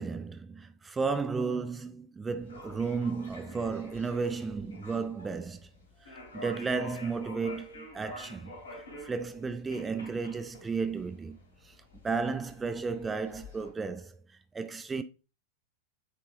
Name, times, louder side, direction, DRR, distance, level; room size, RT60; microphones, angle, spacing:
voice 1, 0.0-5.7 6.0-11.4 11.6-11.8 12.0-14.2 14.5-15.0, right 4 dB, 15° right, 0.4 m, -33 dB
sound 1, 2.4-13.7, left 1 dB, 70° left, 2.9 m, -49 dB
8.7 x 4.4 x 2.6 m
figure-of-eight pair, 90°, 0 cm